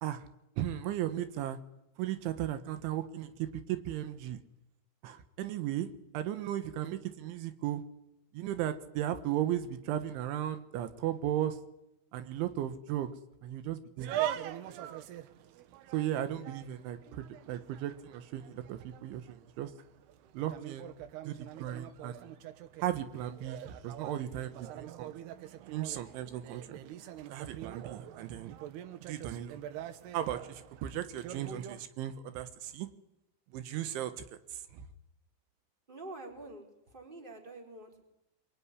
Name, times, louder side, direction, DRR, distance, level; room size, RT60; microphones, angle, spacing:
voice 1, 0.6-1.6 2.0-4.4 5.0-5.9 6.1-7.8 8.3-11.6 12.1-13.1 13.4-14.2 15.9-19.7 20.3-20.9 21.3-22.3 22.8-25.1 25.7-26.8 27.3-28.5 29.1-29.6 30.1-32.9 33.5-34.1 34.5-34.9, right 12 dB, 90° right, 10 dB, 3.7 m, -36 dB
sound 1, 14.0-31.9, right 12 dB, 70° right, 2.9 m, -43 dB
voice 2, 35.9-38.0, right 2 dB, 10° right, 2 dB, 4.0 m, -47 dB
25.0 x 22.5 x 9.9 m, 0.85 s
omnidirectional pair, 5.3 m